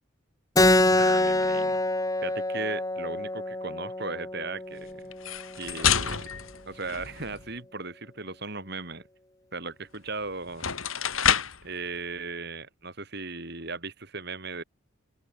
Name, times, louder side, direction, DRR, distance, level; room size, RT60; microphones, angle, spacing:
Keyboard (musical), 0.6-5.7, left 2 dB, 15° left, 1.4 m, -25 dB
voice 1, 0.9-1.8 2.2-5.1 5.6-6.3 6.7-9.1 9.5-10.6 11.6-14.6, right 3 dB, 50° right, 5.1 m, -37 dB
sound 1, 5.1-7.5 9.9-10.0 10.5-11.7, left 8 dB, 75° left, 3.7 m, -28 dB
open air
head